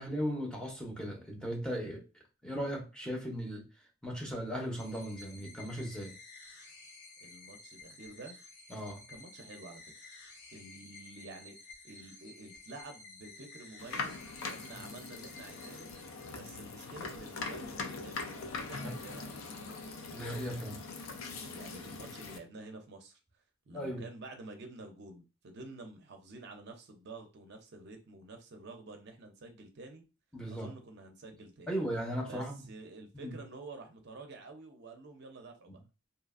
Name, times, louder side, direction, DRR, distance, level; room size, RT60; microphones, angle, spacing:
voice 1, 0.0-2.0 2.4-3.6 4.0-6.1 8.7-9.0 18.8-18.9 20.1-20.8 23.7-24.0 30.3-30.7 31.7-32.5 33.1-33.4, equal, 5° left, 0.5 m, -37 dB
sound 1, 4.7-16.6, left 3 dB, 55° left, 0.9 m, -53 dB
voice 2, 7.2-8.4 9.1-10.1 10.5-15.9 16.3-19.7 21.5-23.2 23.7-30.0 30.5-31.7 32.2-35.8, right 2 dB, 55° right, 0.5 m, -49 dB
sound 2, 13.8-22.4, left 4 dB, 75° left, 0.4 m, -42 dB
2.7 x 2.4 x 2.4 m
head